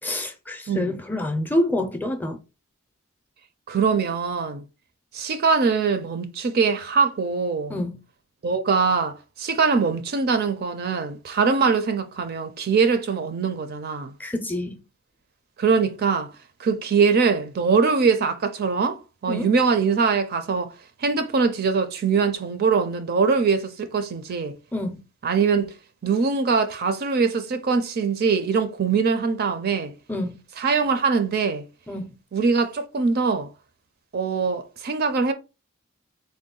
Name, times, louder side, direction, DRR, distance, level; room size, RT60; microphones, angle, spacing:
voice 1, 0.0-2.4 7.7-7.9 14.2-14.8 19.3-19.5 24.7-25.0 30.1-30.4 31.9-32.1, left 1 dB, 10° left, 0.5 m, -27 dB
voice 2, 3.7-4.6 5.1-7.8 8.4-14.1 15.6-16.3 16.6-20.7 21.0-24.6 25.2-25.7 26.0-29.9 30.6-31.7 32.3-33.5 34.1-35.3, right 5 dB, 50° right, 0.4 m, -22 dB
3.6 x 2.2 x 3.7 m
head